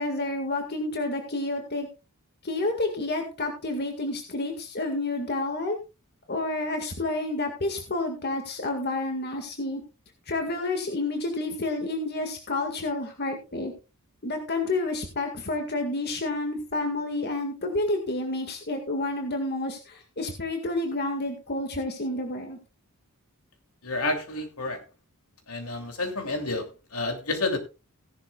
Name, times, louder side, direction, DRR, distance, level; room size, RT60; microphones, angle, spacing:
voice 1, 0.0-1.9 2.4-5.8 6.3-9.8 10.3-13.7 14.2-22.6, left 2 dB, 45° left, 2.0 m, -29 dB
voice 2, 23.8-24.8 25.5-27.6, left 2 dB, 75° left, 3.0 m, -30 dB
17.0 x 11.0 x 2.4 m
head